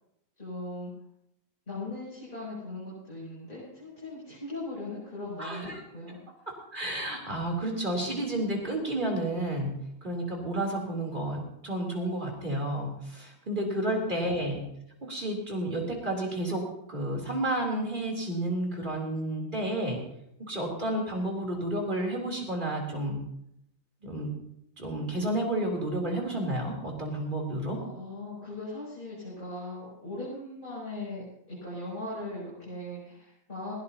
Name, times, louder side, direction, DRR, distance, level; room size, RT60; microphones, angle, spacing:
voice 1, 0.4-0.9 1.7-6.2 13.7-14.3 27.7-33.7, left 2 dB, 25° left, -8 dB, 7.2 m, -39 dB
voice 2, 5.4-5.8 6.5-9.8 10.0-14.6 15.0-20.0 20.4-23.2 24.0-24.3 24.8-27.8, right 1 dB, 25° right, 0 dB, 3.5 m, -31 dB
21.0 x 16.5 x 2.9 m, 0.79 s
omnidirectional pair, 2.0 m